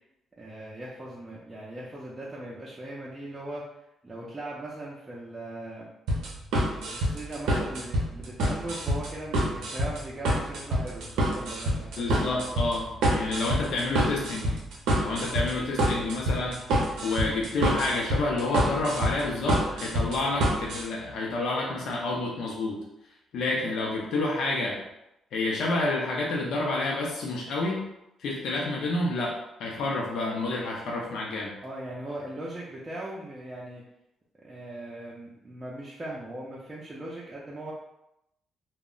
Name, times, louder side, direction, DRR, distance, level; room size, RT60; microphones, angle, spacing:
voice 1, 0.4-3.6 4.0-5.9 6.9-12.4 31.6-33.8 34.4-37.7, right 1 dB, 20° right, -6 dB, 0.4 m, -39 dB
sound 1, 6.1-20.8, equal, 85° right, 0.6 m, -27 dB
voice 2, 12.0-14.6 15.0-16.6 17.0-22.8 23.3-24.8 25.3-27.8 28.2-31.5, left 2 dB, 75° left, -3 dB, 0.5 m, -29 dB
2.0 x 2.0 x 3.7 m, 0.86 s
cardioid pair, 115°, 0 cm